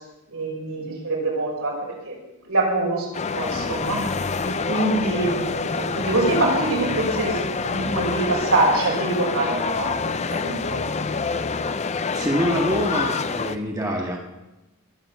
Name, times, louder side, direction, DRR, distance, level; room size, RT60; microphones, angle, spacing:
voice 1, 0.3-1.7 2.0-2.2 2.5-4.0 4.4-7.4 7.6-9.8 10.2-10.8, right 2 dB, 80° right, -2 dB, 6.0 m, -24 dB
sound 1, 3.1-13.6, left 4 dB, 30° left, 0.5 m, -26 dB
voice 2, 12.1-14.2, equal, 15° right, 0 dB, 1.7 m, -25 dB
21.0 x 7.4 x 7.1 m, 1.0 s
head